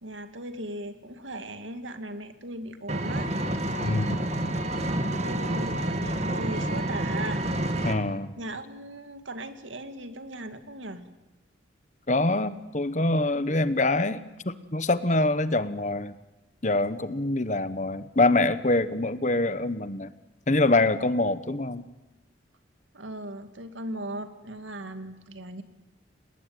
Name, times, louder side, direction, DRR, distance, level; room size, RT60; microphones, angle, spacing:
voice 1, 0.0-3.3 4.3-7.9 8.4-11.1 22.9-25.6, right 1 dB, 85° right, 9 dB, 2.3 m, -38 dB
Engine, 2.9-7.9, right 1 dB, 35° right, 2.0 m, -28 dB
voice 2, 3.8-4.2 7.8-8.3 12.1-16.1 16.6-20.1 20.5-21.9, left 2 dB, 40° left, 14 dB, 1.2 m, -25 dB
29.0 x 19.0 x 9.5 m, 1.0 s
head